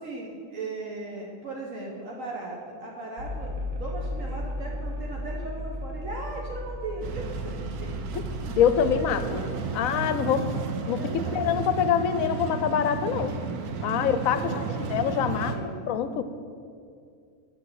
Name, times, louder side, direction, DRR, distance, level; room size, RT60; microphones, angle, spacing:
voice 1, 0.0-7.5 7.8-7.9 9.4-10.5 10.8-11.4 13.9-15.9, right 2 dB, 65° right, -2 dB, 1.4 m, -38 dB
sound 1, 3.2-9.3, left 1 dB, 40° right, 1.0 m, -35 dB
sound 2, 7.0-15.6, right 5 dB, 85° right, 1.3 m, -33 dB
voice 2, 8.6-9.4 9.7-10.6 10.9-11.0 11.3-13.4 13.8-14.6 14.9-15.6 15.9-16.2, left 8 dB, 70° left, 11 dB, 0.9 m, -25 dB
8.2 x 5.4 x 7.8 m, 2.3 s
omnidirectional pair, 1.6 m